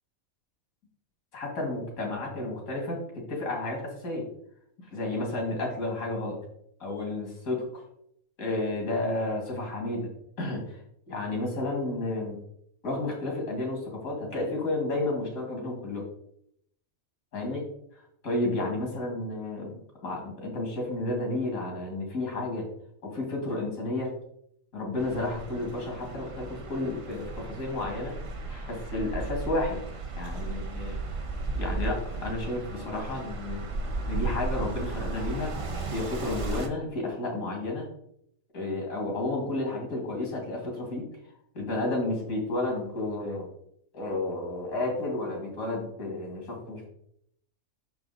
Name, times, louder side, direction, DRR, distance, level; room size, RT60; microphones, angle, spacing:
voice 1, 1.3-4.3 4.8-6.4 6.8-7.8 8.4-10.1 10.4-10.8 11.1-12.4 12.8-16.1 17.3-17.7 18.2-22.7 23.0-24.1 24.7-28.2 28.5-29.8 30.2-31.0 31.5-33.7 34.1-35.5 35.9-37.9 38.5-41.1 41.5-43.5 43.9-46.9, left 2 dB, 80° left, 0 dB, 2.4 m, -31 dB
sound 1, 25.0-36.7, right 3 dB, 40° right, 0.4 m, -35 dB
6.2 x 4.9 x 3.8 m, 0.70 s
omnidirectional pair, 1.4 m